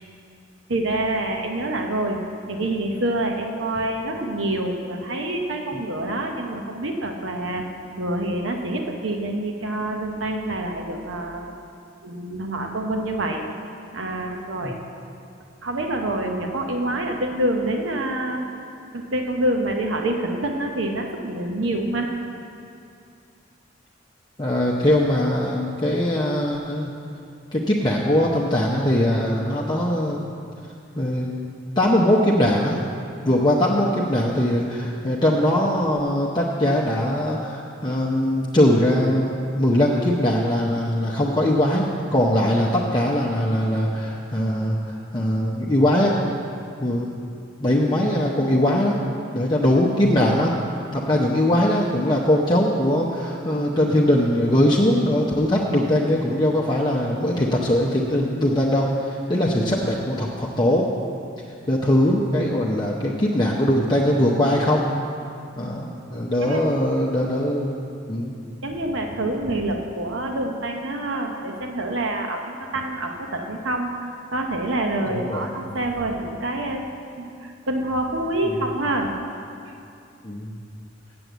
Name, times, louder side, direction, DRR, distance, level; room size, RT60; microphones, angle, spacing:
voice 1, 0.7-2.2 2.5-7.6 8.0-11.6 12.0-13.4 13.9-14.8 15.6-18.5 18.9-22.1 66.1-66.6 68.6-79.1, right 1 dB, 85° right, 3 dB, 1.0 m, -26 dB
voice 2, 24.4-26.9 27.5-30.2 31.0-31.3 31.8-32.8 33.2-41.8 42.1-46.2 46.8-47.1 47.6-49.0 49.3-50.5 50.9-60.9 61.7-64.9 65.6-67.8 68.1-68.3 75.0-75.5 80.2-80.6, left 1 dB, 25° left, -3 dB, 0.7 m, -21 dB
7.7 x 7.7 x 8.1 m, 2.5 s
head